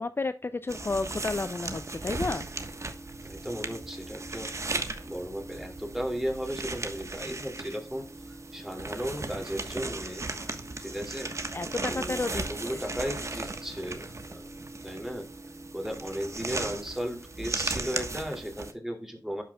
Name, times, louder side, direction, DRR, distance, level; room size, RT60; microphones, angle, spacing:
voice 1, 0.0-2.5 11.5-12.4 12.7-12.8, left 3 dB, 35° left, 12 dB, 0.4 m, -31 dB
sound 1, 0.7-18.7, right 2 dB, 45° right, 1.2 m, -36 dB
voice 2, 3.2-10.3 10.8-11.3 11.9-14.1 14.3-14.4 14.8-15.3 15.7-19.4, equal, 5° right, 2 dB, 2.5 m, -36 dB
11.5 x 6.2 x 2.3 m, 0.34 s
wide cardioid pair, 65°, 7 cm